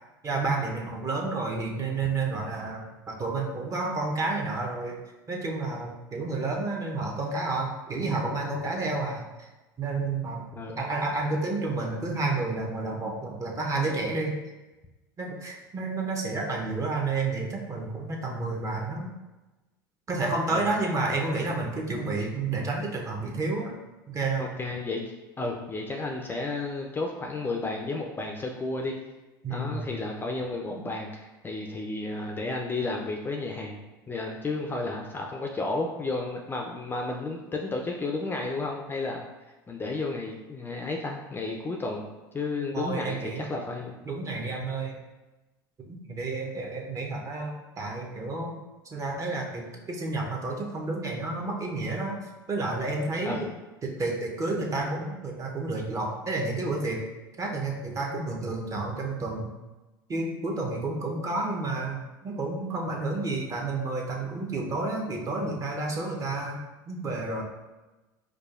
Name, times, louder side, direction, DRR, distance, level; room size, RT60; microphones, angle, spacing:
voice 1, 0.2-5.0 5.3-9.5 9.8-10.5 10.8-14.4 15.2-19.1 20.1-23.8 24.1-24.5 29.4-29.9 30.7-30.8 42.7-43.5 44.0-45.0 45.9-48.6 48.8-53.5 53.8-57.0 57.4-59.5 60.1-66.6 66.9-67.4, right 3 dB, 30° right, 0 dB, 0.7 m, -30 dB
voice 2, 24.4-25.0 25.4-28.9 29.5-33.8 34.1-39.2 39.7-42.1 42.3-44.0 53.3-53.5, left 3 dB, 20° left, 1 dB, 0.4 m, -32 dB
4.8 x 2.3 x 2.4 m, 1.1 s
hypercardioid pair, 85°, 11 cm